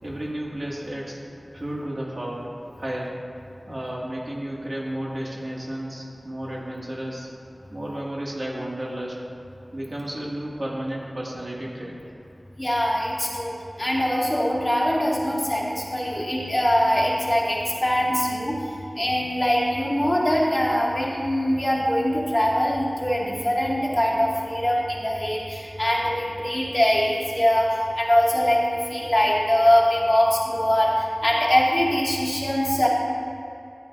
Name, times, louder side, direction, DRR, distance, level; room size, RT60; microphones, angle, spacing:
voice 1, 0.0-1.2 1.5-3.1 3.7-7.3 7.7-9.2 9.7-12.0, right 1 dB, 60° right, -4 dB, 2.2 m, -32 dB
voice 2, 12.6-18.6 19.0-32.9, equal, 25° left, -5 dB, 2.2 m, -22 dB
12.5 x 11.5 x 2.7 m, 2.8 s
wide cardioid pair, 55°, 0 cm